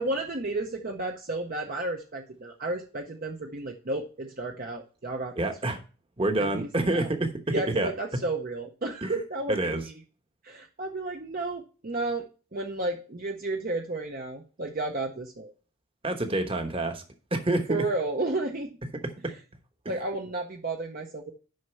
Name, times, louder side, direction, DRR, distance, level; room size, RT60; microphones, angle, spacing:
voice 1, 0.0-5.5 6.4-7.1 7.5-9.9 10.4-15.5 17.7-18.7 19.9-21.3, right 2 dB, 40° right, 2 dB, 0.7 m, -32 dB
voice 2, 5.4-5.8 6.2-7.9 9.0-9.2 9.5-9.8 16.0-17.0 17.3-17.8 19.2-19.3 19.8-20.0, right 2 dB, 25° right, 6 dB, 1.0 m, -27 dB
6.5 x 5.4 x 6.9 m, 0.36 s
head